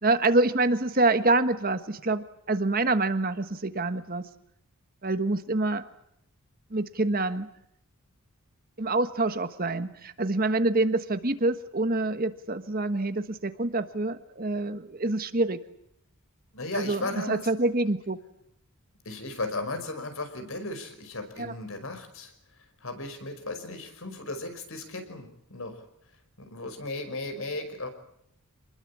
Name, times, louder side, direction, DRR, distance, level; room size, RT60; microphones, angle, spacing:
voice 1, 0.0-4.3 5.0-5.8 6.7-7.5 8.8-15.6 16.7-18.2 21.4-21.5, right 2 dB, 40° right, 10 dB, 1.4 m, -26 dB
voice 2, 16.5-17.4 19.1-22.3 22.8-25.8 26.4-27.9, left 2 dB, 65° left, 8 dB, 5.4 m, -35 dB
27.5 x 21.0 x 8.6 m, 0.75 s
head